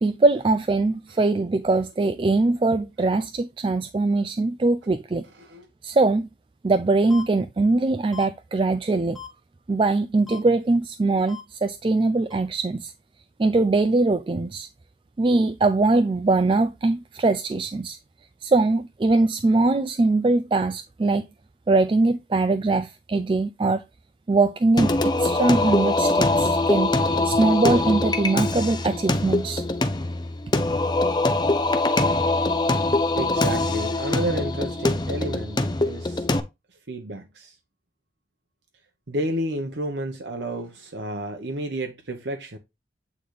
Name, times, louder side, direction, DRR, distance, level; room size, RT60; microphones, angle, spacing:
voice 1, 0.0-5.2 5.8-6.3 6.6-9.2 9.7-12.9 13.4-14.7 15.2-18.0 18.4-21.2 21.7-23.8 24.3-26.9 27.2-29.6, right 3 dB, 30° right, 0.3 m, -22 dB
sound 1, 7.1-7.2 8.1-8.2 9.1-9.3 10.3-10.4 11.3-11.4 12.3-12.4, left 8 dB, ahead, 1.1 m, -38 dB
Singing, 24.8-36.4, left 2 dB, 25° left, 0.6 m, -23 dB
voice 2, 33.2-36.3 36.9-37.6 39.1-42.6, right 1 dB, 80° right, 1.0 m, -31 dB
8.4 x 4.0 x 3.2 m
head